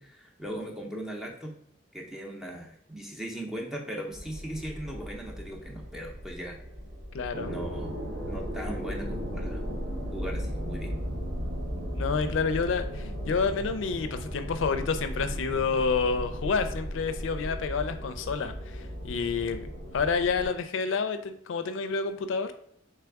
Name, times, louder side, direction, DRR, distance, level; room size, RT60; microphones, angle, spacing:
voice 1, 0.0-1.5 1.9-6.6 7.5-8.0 8.2-9.6 10.1-11.0, equal, ahead, 0 dB, 0.6 m, -38 dB
sound 1, 4.1-20.5, equal, 75° right, 1.0 m, -36 dB
voice 2, 7.1-7.6 11.9-19.7 19.9-22.5, left 5 dB, 80° left, 9 dB, 0.4 m, -29 dB
3.4 x 3.3 x 3.4 m, 0.71 s
head